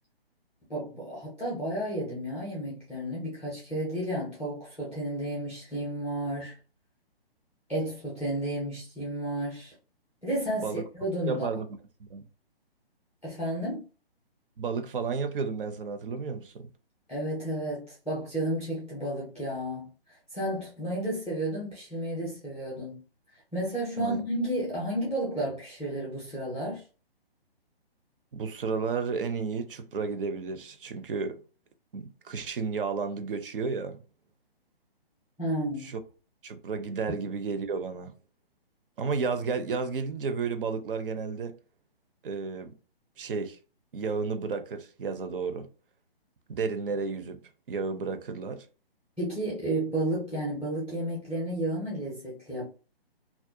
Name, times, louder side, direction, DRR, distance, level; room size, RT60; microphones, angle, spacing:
voice 1, 0.7-6.6 7.7-9.7 10.2-11.5 13.2-13.8 17.1-19.9 20.3-23.0 23.5-26.8 35.4-35.9 49.2-52.7, right 1 dB, 5° left, 0.4 m, -32 dB
voice 2, 10.5-10.8 11.3-11.7 12.0-12.2 14.6-16.7 24.0-24.2 28.3-31.4 31.9-34.0 35.8-36.0 36.4-38.1 39.0-41.5 42.2-42.7 43.2-43.6 43.9-45.7 46.6-47.4 47.7-48.7, right 5 dB, 60° right, 0.5 m, -32 dB
2.4 x 2.0 x 2.6 m
hypercardioid pair, 145°, 30 cm